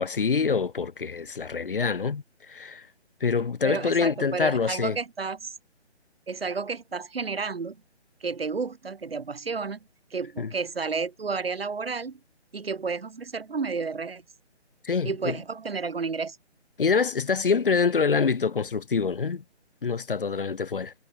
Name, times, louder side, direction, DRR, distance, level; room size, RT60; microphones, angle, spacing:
voice 1, 0.0-2.9 3.2-5.0 10.4-10.5 14.8-15.4 16.8-19.4 19.8-20.9, left 5 dB, 50° left, 1.2 m, -25 dB
voice 2, 3.6-5.6 6.3-7.8 8.2-9.8 10.1-12.2 12.5-14.2 15.0-16.4, right 4 dB, 60° right, 1.5 m, -31 dB
figure-of-eight pair, 145°, 34 cm